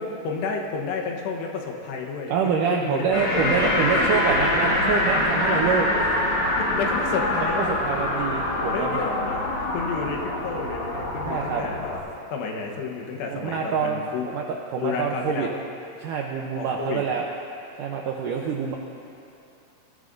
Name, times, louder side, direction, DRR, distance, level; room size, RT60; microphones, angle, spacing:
voice 1, 0.0-3.7 4.0-4.1 6.6-7.7 8.7-9.4 9.7-11.9 12.3-14.3 14.8-15.6 16.5-17.0, left 4 dB, 85° left, 0 dB, 3.3 m, -31 dB
voice 2, 2.3-5.9 7.5-8.9 11.3-11.6 13.3-14.4 14.7-15.5 16.0-17.3 17.8-18.8, right 6 dB, 85° right, 0 dB, 1.8 m, -26 dB
sound 1, 3.1-12.0, left 1 dB, 50° left, 1.8 m, -25 dB
23.0 x 14.0 x 2.6 m, 2.7 s
omnidirectional pair, 4.7 m